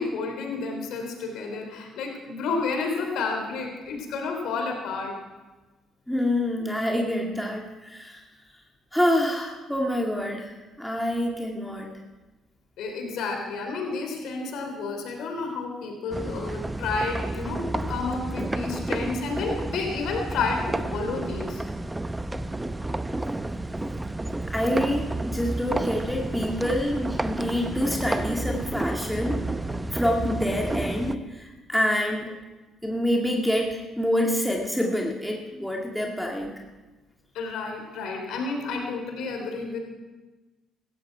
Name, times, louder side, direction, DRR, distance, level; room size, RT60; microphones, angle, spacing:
voice 1, 0.0-5.1 12.8-21.6 37.3-39.8, left 4 dB, 70° left, 3 dB, 3.4 m, -30 dB
voice 2, 6.1-8.2 8.9-11.9 24.5-29.4 29.9-32.3 32.8-36.6, left 1 dB, ahead, -1 dB, 2.1 m, -27 dB
sound 1, 16.1-31.2, right 2 dB, 15° right, 0.8 m, -31 dB
17.0 x 14.5 x 4.7 m, 1.2 s
hypercardioid pair, 55°, 0 cm